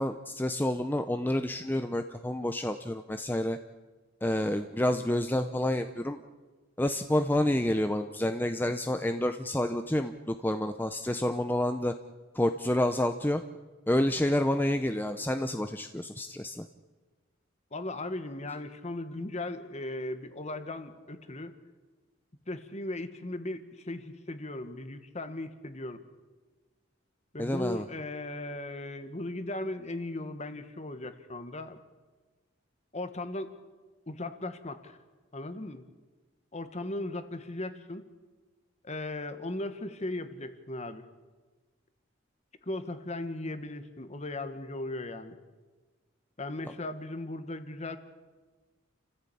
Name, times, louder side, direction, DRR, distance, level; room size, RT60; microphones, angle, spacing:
voice 1, 0.0-3.6 4.2-6.2 6.8-11.9 12.3-13.4 13.9-16.7 27.4-27.9, left 1 dB, 10° left, 7 dB, 0.7 m, -29 dB
voice 2, 17.7-21.5 22.5-26.0 27.3-31.8 32.9-33.6 34.1-35.0 35.3-35.8 36.5-38.1 38.8-41.1 42.6-45.4 46.4-48.0, left 2 dB, 35° left, 10 dB, 1.5 m, -37 dB
29.5 x 15.0 x 8.6 m, 1.3 s
head